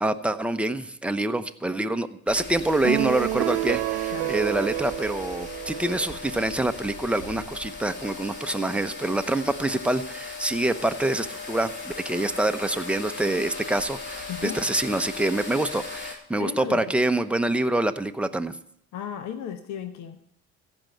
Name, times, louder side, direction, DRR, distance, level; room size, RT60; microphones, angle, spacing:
voice 1, 0.0-18.6, right 1 dB, 5° right, 8 dB, 0.8 m, -26 dB
sound 1, 2.3-16.2, left 3 dB, 35° left, 3.9 m, -38 dB
sound 2, 2.8-6.3, right 21 dB, 70° right, 0.5 m, -29 dB
voice 2, 14.3-14.6 16.4-16.9 18.9-20.2, left 9 dB, 60° left, 7 dB, 1.0 m, -35 dB
15.0 x 5.4 x 8.0 m, 0.73 s
supercardioid pair, 80°, 32 cm